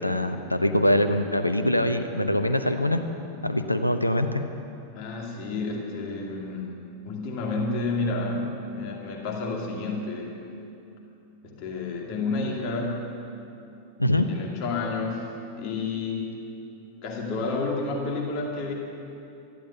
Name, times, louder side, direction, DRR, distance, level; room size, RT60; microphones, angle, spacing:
voice 1, 0.0-3.0 3.4-4.4 14.0-14.3, left 1 dB, 85° left, 8 dB, 0.7 m, -23 dB
voice 2, 4.9-10.3 11.4-13.1 14.1-15.3 15.6-16.4 17.0-18.7, left 3 dB, 40° left, 0 dB, 2.4 m, -30 dB
13.5 x 12.0 x 8.0 m, 2.8 s
figure-of-eight pair, 90°, 0 cm